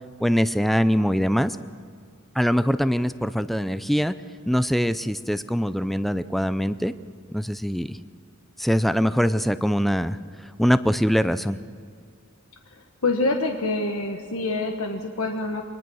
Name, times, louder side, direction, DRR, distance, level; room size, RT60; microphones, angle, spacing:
voice 1, 0.2-1.6 2.4-4.1 4.5-6.9 7.3-8.0 8.6-10.2 10.6-11.6, equal, ahead, 13 dB, 0.4 m, -23 dB
voice 2, 13.0-15.6, left 2 dB, 90° left, 4 dB, 1.3 m, -26 dB
22.5 x 19.5 x 6.3 m, 2.2 s
head